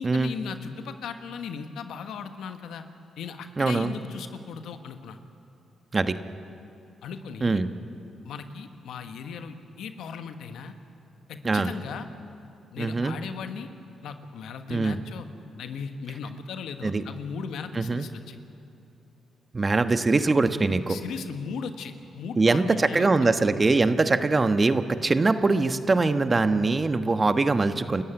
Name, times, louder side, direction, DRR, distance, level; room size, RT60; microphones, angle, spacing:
voice 1, 0.0-2.8 3.2-5.2 7.0-7.6 8.2-10.8 11.3-12.1 12.7-13.7 14.0-15.3 15.6-18.4 20.9-23.1, left 6 dB, 75° left, 8 dB, 1.3 m, -37 dB
voice 2, 3.6-3.9 5.9-6.2 7.4-7.7 11.4-11.7 12.8-13.2 14.7-15.0 16.8-17.0 17.7-18.1 19.5-21.0 22.4-28.0, right 3 dB, 35° right, 9 dB, 1.3 m, -22 dB
29.0 x 14.5 x 9.0 m, 2.6 s
supercardioid pair, 55°, 0 cm